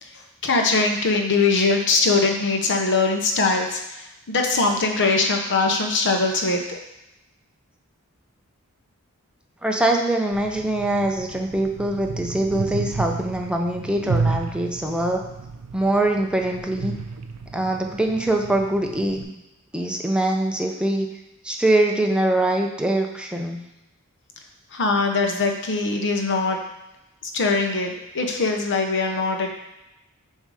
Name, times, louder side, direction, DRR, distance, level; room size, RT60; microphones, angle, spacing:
voice 1, 0.0-6.8 24.7-26.6 27.2-29.5, left 3 dB, 55° left, 3 dB, 0.8 m, -22 dB
voice 2, 9.6-15.2 15.7-16.9 17.5-19.3 19.7-21.1 21.4-23.6, right 1 dB, 5° right, 2 dB, 0.5 m, -23 dB
sound 1, 10.3-19.2, right 4 dB, 80° right, 0.5 m, -32 dB
7.2 x 2.8 x 4.8 m, 0.91 s
head